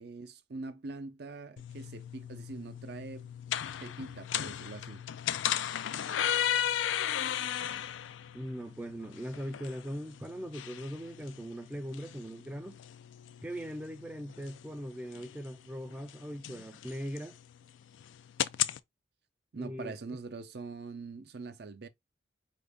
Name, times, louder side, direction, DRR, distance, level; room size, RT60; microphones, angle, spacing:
voice 1, 0.0-3.3 3.8-5.0 19.5-21.9, right 3 dB, 60° right, 0.5 m, -43 dB
sound 1, 1.6-18.8, left 10 dB, 90° left, 0.4 m, -36 dB
voice 2, 8.3-12.8 13.4-17.4 19.5-19.9, equal, 10° right, 0.3 m, -40 dB
4.9 x 2.5 x 3.4 m
head